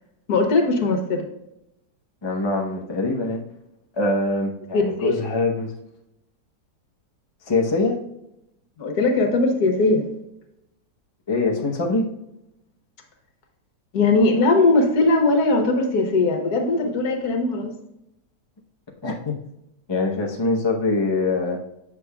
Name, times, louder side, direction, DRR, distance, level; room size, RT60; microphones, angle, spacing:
voice 1, 0.3-1.3 4.7-5.2 8.8-10.0 13.9-17.7, left 2 dB, 65° left, 4 dB, 1.5 m, -20 dB
voice 2, 2.2-3.4 4.0-5.7 7.5-8.0 11.3-12.1 19.0-19.3 19.9-21.6, left 2 dB, 30° left, -1 dB, 0.5 m, -23 dB
8.2 x 6.0 x 2.3 m, 0.86 s
omnidirectional pair, 1.8 m